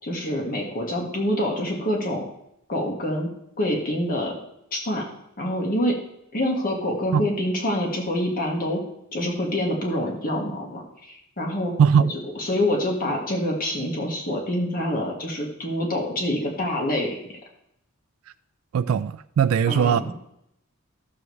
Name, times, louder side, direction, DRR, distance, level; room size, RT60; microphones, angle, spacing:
voice 1, 0.0-2.2 2.7-3.3 3.6-4.4 4.7-5.0 5.4-6.0 6.3-8.8 9.1-11.7 12.1-17.2 19.7-20.0, left 1 dB, 45° left, 0 dB, 1.7 m, -26 dB
voice 2, 11.8-12.1 18.7-20.1, right 7 dB, 75° right, 12 dB, 0.3 m, -20 dB
14.0 x 7.0 x 3.2 m, 0.77 s
head